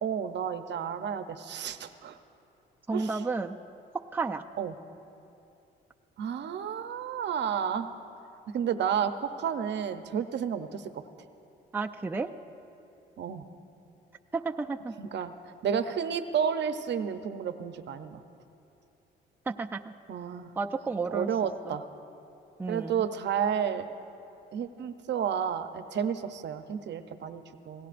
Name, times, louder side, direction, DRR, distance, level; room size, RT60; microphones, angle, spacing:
voice 1, 0.0-2.2 2.9-3.2 4.6-4.8 6.2-7.9 8.5-11.0 13.2-13.4 15.0-18.2 20.1-20.5 21.1-21.8 22.7-23.9 24.5-27.9, right 8 dB, 60° right, 9 dB, 0.7 m, -31 dB
voice 2, 2.9-3.6 4.1-4.4 11.7-12.3 14.3-14.9 19.5-19.9 20.6-21.3 21.7-21.8 22.6-23.0, right 4 dB, 10° right, 4 dB, 0.5 m, -32 dB
26.5 x 18.0 x 2.6 m, 2.7 s
cardioid pair, 90°, 20 cm